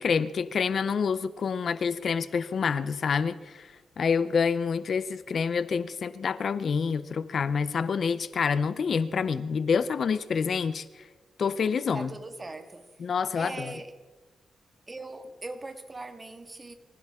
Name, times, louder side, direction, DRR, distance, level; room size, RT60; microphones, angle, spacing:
voice 1, 0.0-10.9 11.4-12.1 13.0-13.7, left 6 dB, 55° left, 14 dB, 0.6 m, -27 dB
voice 2, 11.9-12.9 13.3-13.9 14.9-16.7, right 2 dB, 25° right, 7 dB, 1.6 m, -40 dB
25.0 x 15.5 x 3.7 m, 1.3 s
cardioid pair, 115°, 0 cm